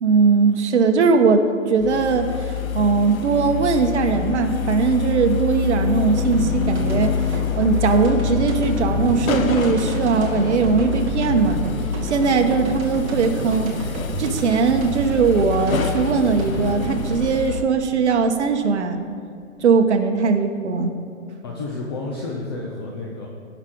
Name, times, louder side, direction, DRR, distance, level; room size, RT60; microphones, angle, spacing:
voice 1, 0.0-2.3 2.7-7.2 7.6-11.7 12.0-13.8 14.2-19.0 19.6-20.9, right 5 dB, 55° right, 6 dB, 1.1 m, -19 dB
sound 1, 1.8-17.6, left 7 dB, 80° left, 0.9 m, -26 dB
sound 2, 6.2-19.0, right 2 dB, 25° right, 1.5 m, -31 dB
voice 2, 21.4-23.3, left 3 dB, 20° left, -2 dB, 0.6 m, -30 dB
16.5 x 6.0 x 3.8 m, 2.5 s
hypercardioid pair, 150°, 40 cm